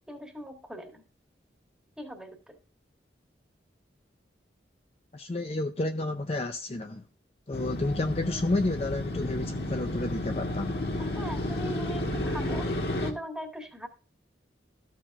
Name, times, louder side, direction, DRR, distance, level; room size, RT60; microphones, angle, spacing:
voice 1, 0.1-1.0 2.0-2.6 11.0-13.9, equal, 5° right, 1.7 m, -41 dB
voice 2, 5.1-7.0 7.5-10.8, left 2 dB, 35° left, 0.5 m, -30 dB
Motorcycle, 7.5-13.1, left 1 dB, 60° left, 1.6 m, -32 dB
14.0 x 7.4 x 2.4 m
head